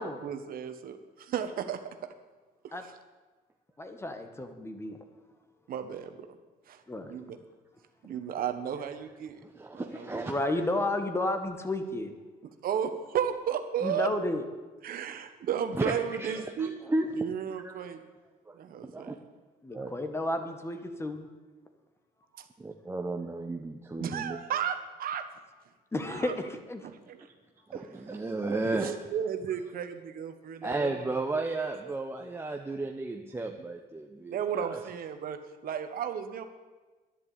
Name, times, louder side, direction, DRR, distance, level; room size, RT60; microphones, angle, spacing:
voice 1, 0.0-2.0 2.6-3.0 5.7-6.3 6.7-6.8 7.1-7.4 8.0-9.4 9.7-10.3 12.6-14.1 14.8-16.7 17.1-18.0 18.5-19.2 22.3-22.5 24.0-25.3 26.1-26.3 26.8-27.3 27.7-31.1 31.8-31.9 34.3-35.4 35.6-36.4, right 8 dB, 60° right, 8 dB, 1.3 m, -34 dB
voice 2, 3.8-5.0 6.9-7.2 10.3-12.1 13.8-14.4 19.6-21.3 25.9-26.9, left 1 dB, 15° left, 7 dB, 1.5 m, -32 dB
voice 3, 9.6-10.3 15.8-15.9 16.2-16.3 16.9-17.1 17.6-17.7 18.5-18.6 18.8-19.1 19.7-19.9 22.6-24.4 27.7-28.9 30.6-34.3 34.7-34.8, right 2 dB, 15° right, 2 dB, 1.0 m, -33 dB
10.5 x 10.5 x 8.6 m, 1.3 s
cardioid pair, 110°, 17 cm